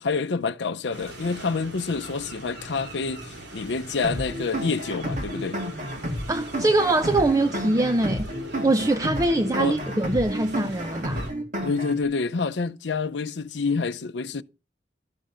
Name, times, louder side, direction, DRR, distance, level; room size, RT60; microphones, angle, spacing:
voice 1, 0.0-5.6 9.6-9.8 11.6-14.4, left 4 dB, 75° left, 0.6 m, -27 dB
sound 1, 0.9-11.3, right 1 dB, 75° right, 3.0 m, -41 dB
sound 2, 4.0-12.0, equal, 45° right, 2.9 m, -31 dB
voice 2, 6.3-8.3 8.6-11.2, right 2 dB, 20° right, 0.5 m, -23 dB
12.5 x 6.8 x 5.0 m
head